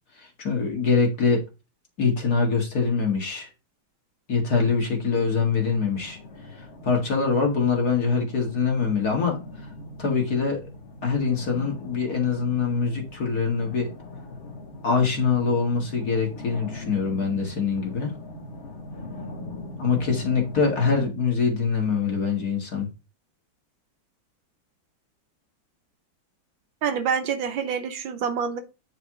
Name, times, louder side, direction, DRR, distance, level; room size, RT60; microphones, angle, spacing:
voice 1, 0.2-1.4 2.0-3.5 4.3-6.2 6.6-9.4 10.0-10.7 11.0-13.9 14.8-18.1 19.8-22.9, left 5 dB, 50° left, 2.2 m, -24 dB
sound 1, 5.3-21.1, left 2 dB, 90° left, 2.3 m, -41 dB
voice 2, 26.8-28.6, right 7 dB, 75° right, 1.6 m, -27 dB
9.2 x 4.8 x 3.6 m
omnidirectional pair, 2.2 m